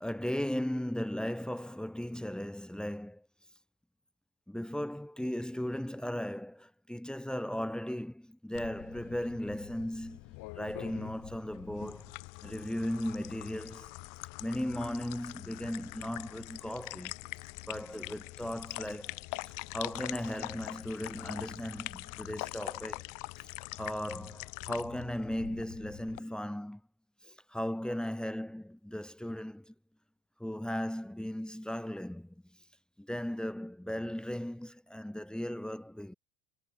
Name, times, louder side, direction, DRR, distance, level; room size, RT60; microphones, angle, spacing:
voice 1, 0.0-3.3 4.5-12.1 12.4-13.9 14.4-17.1 17.7-19.2 19.7-23.1 23.7-26.8 27.2-29.7 30.4-32.3 33.0-36.1, left 1 dB, ahead, 4.8 m, -37 dB
sound 1, 8.5-26.2, left 25 dB, 75° left, 6.9 m, -44 dB
cardioid pair, 140°, 32 cm